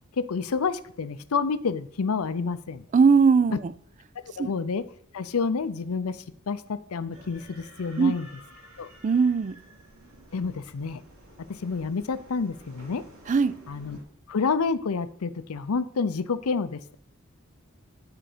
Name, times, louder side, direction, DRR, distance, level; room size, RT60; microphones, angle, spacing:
voice 1, 0.2-2.8 3.5-3.6 4.4-4.8 5.1-8.3 8.8-8.9 10.3-11.0 11.4-13.0 13.7-14.0 14.3-17.0, left 5 dB, 90° left, 0.6 m, -29 dB
voice 2, 2.9-3.7 4.4-4.5 8.0-8.1 9.0-9.6 13.3-13.6, right 5 dB, 35° right, 0.3 m, -20 dB
sound 1, 7.1-14.0, right 1 dB, 85° right, 3.0 m, -51 dB
10.0 x 4.9 x 5.0 m
head